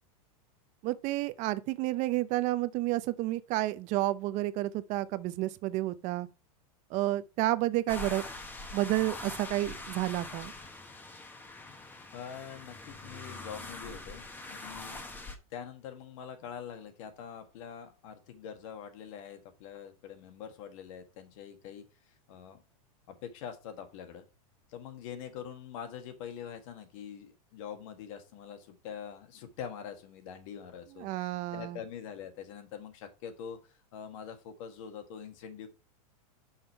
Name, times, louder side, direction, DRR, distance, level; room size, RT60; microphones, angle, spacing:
voice 1, 0.8-6.3 6.9-8.2 8.7-10.5 31.0-31.8, right 17 dB, 40° right, 0.6 m, -30 dB
sound 1, 7.9-15.4, left 2 dB, 10° left, 0.9 m, -43 dB
voice 2, 11.7-15.0 15.5-22.6 23.1-24.2 24.7-35.7, left 8 dB, 60° left, 1.7 m, -44 dB
5.6 x 5.2 x 4.5 m
supercardioid pair, 130°, 19 cm